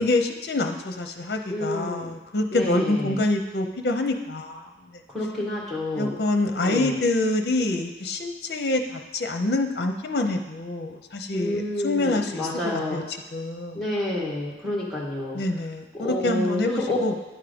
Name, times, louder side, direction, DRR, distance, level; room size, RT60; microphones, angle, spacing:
voice 1, 0.0-5.0 5.9-13.0 13.3-13.8 15.3-17.1, left 2 dB, 65° left, 5 dB, 0.6 m, -26 dB
voice 2, 1.5-2.1 2.5-3.2 5.1-6.2 6.6-7.0 11.3-13.0 13.7-15.4 15.9-17.0, left 1 dB, ahead, -5 dB, 1.5 m, -29 dB
10.0 x 3.6 x 5.1 m, 1.1 s
head